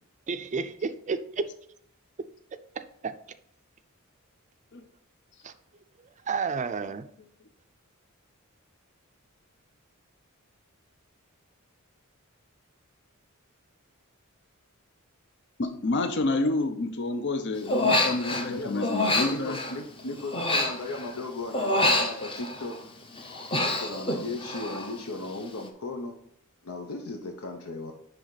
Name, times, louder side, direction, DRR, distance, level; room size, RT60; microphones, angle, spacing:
voice 1, 0.3-1.5 2.8-3.1 5.4-5.5 6.3-7.0, right 5 dB, 35° right, 0.4 m, -31 dB
voice 2, 15.6-19.6, left 2 dB, 55° left, 0.7 m, -28 dB
Human voice, 17.7-18.5 18.8-21.2 21.5-22.8 23.1-25.0 25.2-25.6, left 1 dB, 25° left, 0.8 m, -27 dB
voice 3, 18.2-18.9 19.1-22.8 23.6-26.2 26.6-27.9, left 2 dB, 80° left, 0.9 m, -36 dB
10.0 x 3.5 x 4.0 m
head